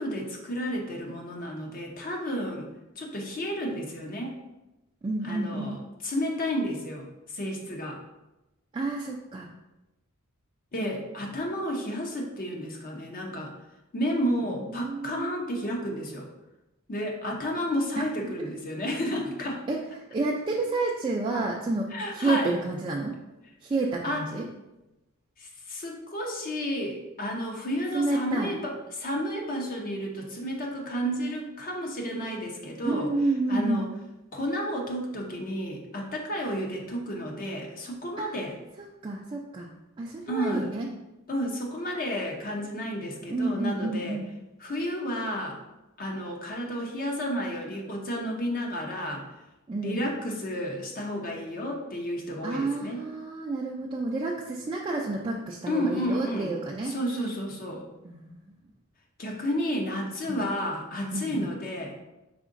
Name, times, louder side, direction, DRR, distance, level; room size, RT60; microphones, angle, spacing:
voice 1, 0.0-2.7 3.0-4.3 5.2-8.0 10.7-13.5 13.9-16.3 16.9-19.6 21.9-22.5 24.0-24.2 25.4-33.1 33.5-33.9 34.3-38.5 40.3-40.7 41.3-44.2 44.6-45.6 46.0-49.3 49.8-53.0 55.7-56.5 56.9-57.9 59.2-62.0, equal, 40° left, 0 dB, 0.6 m, -31 dB
voice 2, 5.0-5.8 8.7-9.5 14.5-15.3 18.4-18.5 19.7-19.8 20.1-23.2 23.6-24.5 27.9-28.5 32.8-33.9 38.2-38.3 38.8-39.7 40.0-40.9 43.3-44.3 49.7-50.1 52.4-56.9 58.0-58.5 60.3-60.5 61.1-61.5, right 2 dB, 25° right, -3 dB, 0.3 m, -30 dB
4.9 x 3.6 x 2.5 m, 0.98 s
head